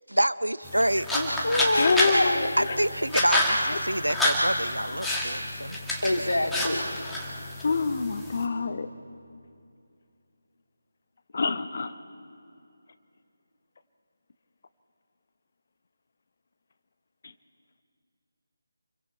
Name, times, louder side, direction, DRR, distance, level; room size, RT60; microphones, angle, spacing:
voice 1, 0.1-1.1 2.6-5.8, right 1 dB, 85° right, 16 dB, 0.6 m, -27 dB
sound 1, 0.6-8.5, left 1 dB, ahead, 1.9 m, -29 dB
voice 2, 1.1-2.5 6.0-6.9, left 1 dB, 75° left, 4 dB, 2.0 m, -26 dB
voice 3, 1.7-2.8 3.7-3.8 7.6-8.9 11.3-11.9 17.2-17.3, left 4 dB, 45° left, 11 dB, 0.9 m, -26 dB
28.5 x 23.0 x 4.4 m, 2.5 s
figure-of-eight pair, 155°, 0 cm